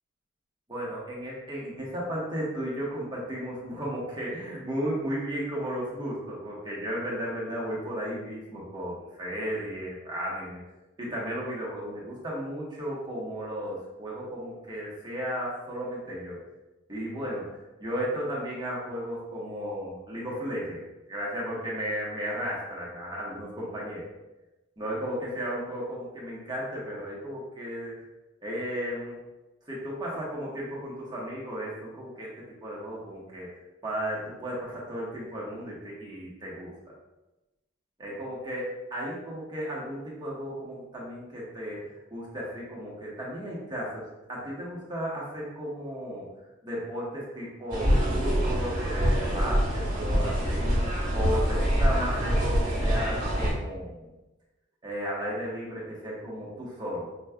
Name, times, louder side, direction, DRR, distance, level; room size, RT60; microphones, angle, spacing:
voice 1, 0.7-10.6 11.0-16.4 16.9-20.8 21.1-24.0 24.8-27.9 28.4-29.2 29.6-33.5 33.8-36.9 38.0-44.0 44.3-46.3 46.6-50.8 51.1-54.1 54.8-57.1, equal, 25° right, -5 dB, 1.0 m, -34 dB
sound 1, 47.7-53.5, equal, 45° right, 1.4 m, -25 dB
4.4 x 3.1 x 2.2 m, 1.0 s
head